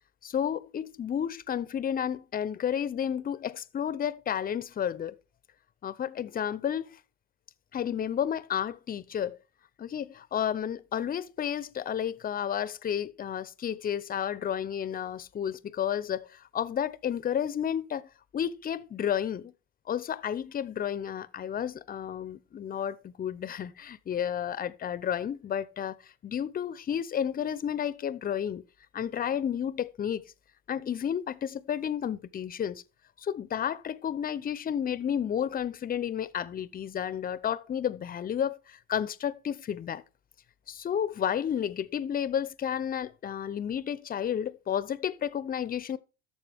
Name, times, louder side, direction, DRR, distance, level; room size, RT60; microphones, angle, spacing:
voice 1, 0.2-5.1 5.8-7.0 7.7-9.4 9.8-18.0 18.3-19.5 19.9-28.6 28.9-30.2 30.7-32.8 33.2-40.0 40.7-46.0, left 9 dB, 25° left, 0.7 m, -31 dB
11.5 x 7.0 x 3.5 m
hypercardioid pair, 85°, 34 cm